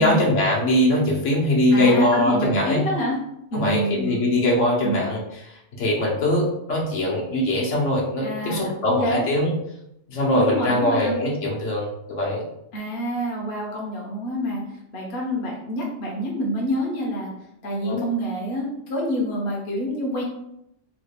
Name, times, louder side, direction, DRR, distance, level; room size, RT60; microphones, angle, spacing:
voice 1, 0.0-2.8 3.5-5.2 5.8-9.5 10.1-12.4 17.8-18.0, left 1 dB, 75° left, -3 dB, 1.2 m, -21 dB
voice 2, 1.7-3.2 3.5-4.2 4.8-5.1 8.2-9.2 10.4-11.1 12.7-14.6 14.9-17.3 17.6-20.2, equal, 60° left, -3 dB, 1.0 m, -27 dB
3.2 x 2.4 x 3.3 m, 0.79 s
omnidirectional pair, 1.3 m